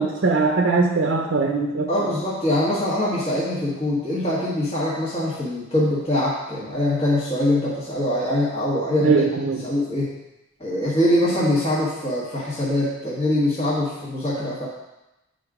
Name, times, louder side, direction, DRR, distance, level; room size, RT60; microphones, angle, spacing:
voice 1, 0.0-1.9 9.0-9.6, right 4 dB, 55° right, 1 dB, 0.7 m, -20 dB
voice 2, 1.9-10.1 10.6-14.7, left 1 dB, 30° left, -8 dB, 1.4 m, -23 dB
8.9 x 3.9 x 4.9 m, 0.98 s
head